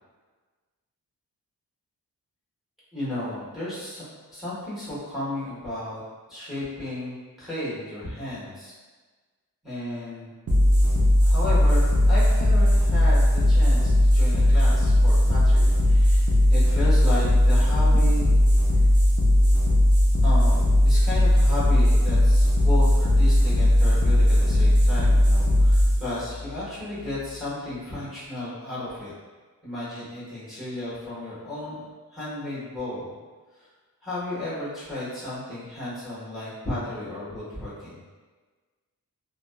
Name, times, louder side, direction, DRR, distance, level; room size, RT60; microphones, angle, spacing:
voice 1, 2.9-6.0 6.3-8.7 9.6-10.3 11.2-18.4 20.2-29.1 29.6-31.8 32.1-33.1 33.6-33.7 34.0-38.0, left 1 dB, ahead, -11 dB, 1.2 m, -33 dB
sound 1, 10.5-27.5, left 1 dB, 40° right, 0.6 m, -19 dB
2.7 x 2.3 x 2.2 m, 1.4 s
cardioid pair, 60°, 36 cm